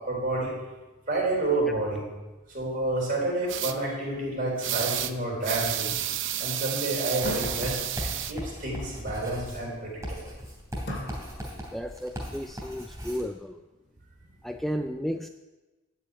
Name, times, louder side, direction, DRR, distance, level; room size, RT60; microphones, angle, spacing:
voice 1, 0.1-0.5 1.1-2.0 2.5-5.9 6.4-7.8 8.0-10.3, right 2 dB, 40° right, -2 dB, 4.0 m, -29 dB
sound 1, 3.5-3.7 4.6-5.1 5.4-8.3, right 12 dB, 60° right, 0.6 m, -31 dB
sound 2, 3.6-5.2 7.3-8.6 10.9-12.0, equal, 55° left, 2.2 m, -40 dB
Writing, 7.2-13.3, equal, 15° right, 3.1 m, -38 dB
voice 2, 11.7-13.6 14.4-15.3, equal, ahead, 6 dB, 0.3 m, -33 dB
12.5 x 5.6 x 8.6 m, 1.2 s
head